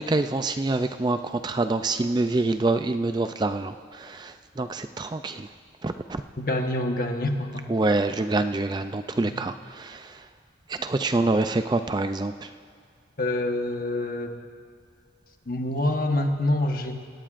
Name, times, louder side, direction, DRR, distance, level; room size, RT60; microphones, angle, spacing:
voice 1, 0.0-5.5 5.8-6.2 7.7-10.3 10.7-12.5, right 2 dB, 25° right, 9 dB, 0.3 m, -26 dB
voice 2, 6.4-7.7 9.2-9.4 13.2-14.3 15.5-17.1, left 1 dB, 50° left, 4 dB, 1.2 m, -26 dB
26.5 x 17.5 x 2.5 m, 2.3 s
head